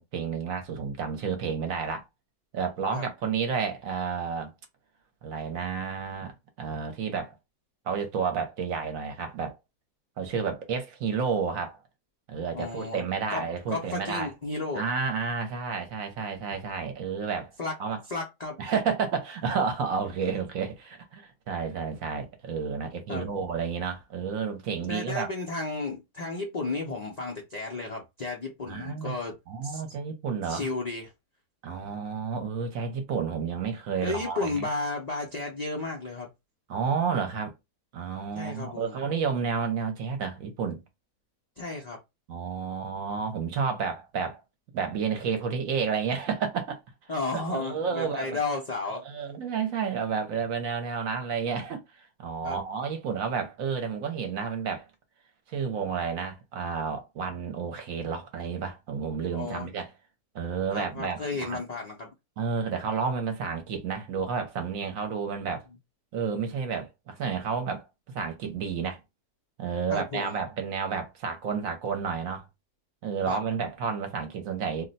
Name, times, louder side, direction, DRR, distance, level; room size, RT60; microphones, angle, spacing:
voice 1, 0.0-2.0 2.5-4.5 5.2-7.3 7.8-9.5 10.2-11.8 12.3-14.3 14.7-17.5 17.8-18.0 18.6-25.3 28.7-29.2 29.5-30.7 31.6-34.7 36.7-37.5 37.9-40.8 42.3-44.4 44.7-46.8 47.3-48.4 48.9-54.9 55.5-59.9 60.3-61.6 62.4-65.6 66.1-67.9 68.1-69.0 69.6-72.5 73.0-74.8, right 6 dB, 65° right, 1.0 m, -31 dB
voice 2, 12.5-13.1 13.3-14.8 17.6-17.7 18.1-18.6 20.2-20.3 23.1-23.3 24.9-29.3 29.6-29.8 30.4-31.1 34.0-36.3 38.3-39.0 41.6-42.0 47.1-49.0 52.4-52.6 59.3-59.7 60.7-62.1 69.9-70.4 73.3-73.4, left 3 dB, 70° left, 0.3 m, -33 dB
2.6 x 2.1 x 3.9 m
omnidirectional pair, 1.7 m